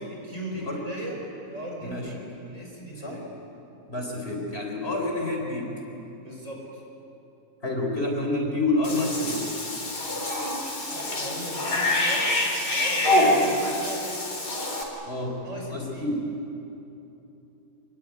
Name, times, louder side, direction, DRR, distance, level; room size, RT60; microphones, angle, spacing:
voice 1, 0.1-1.2 1.4-3.2 4.2-4.4 6.2-6.8 10.9-14.5 15.4-16.1, right 1 dB, 50° right, -1 dB, 6.2 m, -38 dB
voice 2, 3.9-5.7 7.6-9.6 15.1-15.4 15.7-16.2, left 2 dB, 40° left, 0 dB, 4.8 m, -28 dB
Cat / Bathtub (filling or washing), 8.8-14.8, left 1 dB, 80° left, 4.4 m, -26 dB
27.5 x 22.5 x 9.4 m, 3.0 s
omnidirectional pair, 1.7 m